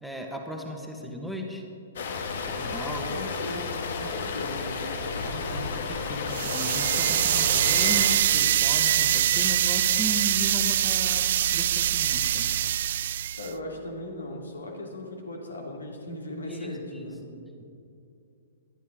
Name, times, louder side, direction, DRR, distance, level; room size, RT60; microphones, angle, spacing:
voice 1, 0.0-1.6 2.5-3.1 5.1-12.5 16.5-17.1, equal, ahead, 2 dB, 1.6 m, -36 dB
sound 1, 2.0-8.1, left 4 dB, 55° left, 1.5 m, -32 dB
voice 2, 3.1-5.6 13.3-17.3, left 1 dB, 70° left, 1 dB, 2.6 m, -38 dB
sound 2, 6.3-13.5, right 11 dB, 50° right, 0.4 m, -24 dB
20.5 x 12.0 x 3.8 m, 2.6 s
figure-of-eight pair, 115°, 0 cm